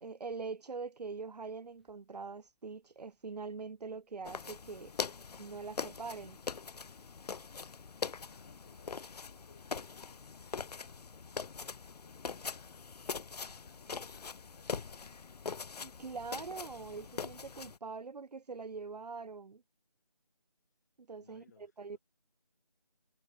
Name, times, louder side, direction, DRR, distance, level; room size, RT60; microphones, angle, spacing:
voice 1, 0.0-4.9 5.4-6.4 15.8-19.6 21.0-21.4 21.8-22.0, right 4 dB, 75° right, 0.5 m, -43 dB
sound 1, 1.3-15.8, left 2 dB, ahead, 3.2 m, -87 dB
sound 2, 4.2-17.8, left 5 dB, 70° left, 0.4 m, -42 dB
voice 2, 8.3-12.9 13.6-15.1 21.2-22.0, left 6 dB, 25° left, 7.7 m, -65 dB
figure-of-eight pair, 165°, 21 cm